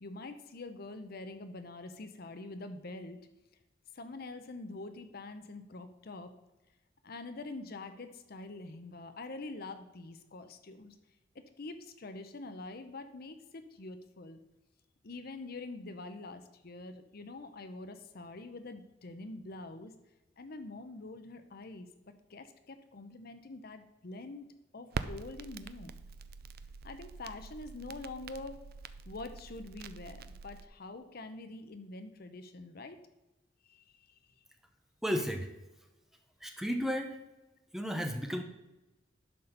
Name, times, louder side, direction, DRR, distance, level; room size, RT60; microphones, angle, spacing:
voice 1, 0.0-3.2 3.9-6.3 7.0-11.0 11.3-14.4 15.0-20.0 20.4-21.9 22.3-25.9 26.8-28.6 29.1-33.0 33.7-34.3, left 2 dB, 50° left, 9 dB, 0.7 m, -45 dB
Crackle, 24.9-30.7, right 4 dB, 50° right, 0.5 m, -44 dB
voice 2, 35.0-35.5 36.4-37.2 37.7-38.4, equal, ahead, 4 dB, 0.8 m, -33 dB
11.0 x 4.2 x 6.6 m, 1.0 s
head